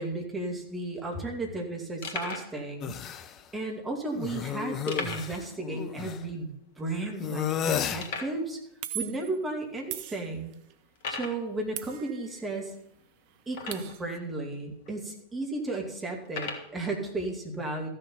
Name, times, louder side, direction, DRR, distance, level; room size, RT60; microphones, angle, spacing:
voice 1, 0.0-2.9 3.5-6.5 6.8-8.6 8.9-10.5 11.1-12.7 13.5-17.9, right 2 dB, 15° right, 1 dB, 2.6 m, -34 dB
sound 1, 0.6-0.7 0.8-1.0 1.5-1.6 2.0-2.5 3.3-3.4 4.9-5.5 5.7-5.8 6.3-6.4 7.0-7.1 8.0-8.4 9.2-9.3 9.9-10.0 11.0-11.4 13.5-14.1 14.9-15.0 16.3-16.7, left 4 dB, 55° left, 1.6 m, -37 dB
sound 2, 2.8-3.3 4.1-6.2 7.2-8.1, left 9 dB, 30° left, 0.6 m, -32 dB
sound 3, 7.6-7.8 8.8-9.4 9.9-10.7 11.8-12.6 12.9-13.0 13.3-14.2, right 11 dB, 45° right, 0.7 m, -40 dB
14.0 x 6.7 x 5.8 m, 0.75 s
figure-of-eight pair, 90°, 0 cm